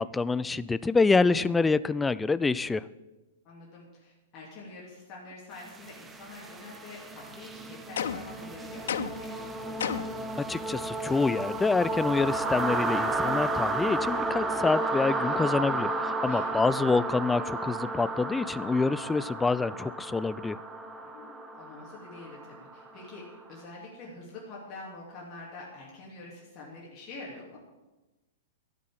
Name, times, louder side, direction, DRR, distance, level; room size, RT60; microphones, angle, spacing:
voice 1, 0.0-2.8 10.5-20.6, left 4 dB, 10° left, 17 dB, 0.4 m, -26 dB
voice 2, 3.4-9.3 16.2-16.5 21.1-21.2 21.6-27.6, left 2 dB, 35° left, -4 dB, 3.0 m, -46 dB
sound 1, 5.6-23.4, right 2 dB, 10° right, 1.1 m, -33 dB
sound 2, 8.0-8.4 8.9-9.3 9.8-10.2, left 8 dB, 60° left, 0.6 m, -32 dB
12.5 x 7.4 x 7.5 m, 1.1 s
figure-of-eight pair, 105°, 0 cm